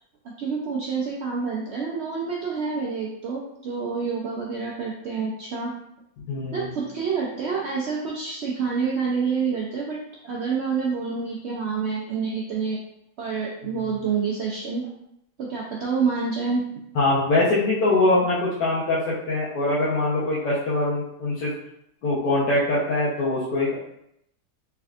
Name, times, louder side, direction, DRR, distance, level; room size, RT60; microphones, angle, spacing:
voice 1, 0.4-5.7 6.5-10.0 10.2-12.8 13.2-14.9 15.4-16.6, right 5 dB, 85° right, -3 dB, 0.5 m, -27 dB
voice 2, 6.3-6.7 16.9-21.5 22.0-23.7, left 2 dB, 90° left, -9 dB, 1.4 m, -23 dB
3.4 x 3.4 x 2.4 m, 0.78 s
omnidirectional pair, 1.7 m